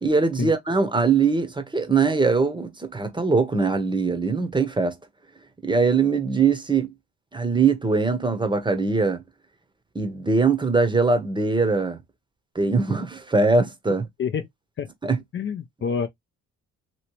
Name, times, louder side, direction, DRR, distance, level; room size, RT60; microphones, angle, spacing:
voice 1, 0.0-4.9 5.6-6.9 7.3-9.2 9.9-12.0 12.5-14.0 15.0-15.2, right 4 dB, 15° right, 0.8 m, -22 dB
voice 2, 15.3-16.1, left 6 dB, 40° left, 0.5 m, -27 dB
3.0 x 2.9 x 3.0 m
cardioid pair, 90°, 30 cm